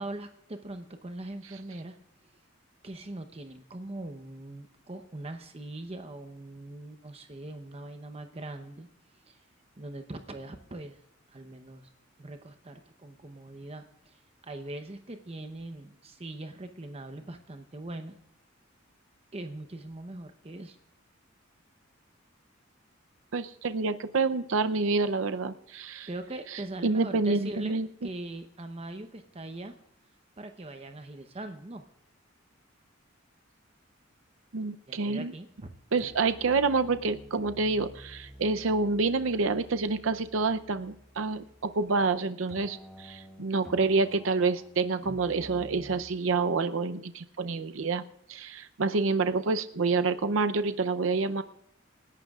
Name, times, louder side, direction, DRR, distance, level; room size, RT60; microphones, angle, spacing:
voice 1, 0.0-2.0 2.8-8.9 9.2-9.4 9.8-11.0 11.3-11.9 12.2-18.2 19.3-20.8 25.8-29.7 30.4-31.8 34.9-35.7, right 2 dB, 30° right, 7 dB, 0.8 m, -41 dB
voice 2, 23.3-26.1 26.8-27.9 34.5-35.3 35.9-48.0 48.3-51.4, right 4 dB, 75° right, 10 dB, 0.6 m, -28 dB
sound 1, 35.4-35.7 36.0-42.2 42.5-46.0, equal, ahead, 1.8 m, -50 dB
28.0 x 11.5 x 2.4 m, 0.78 s
head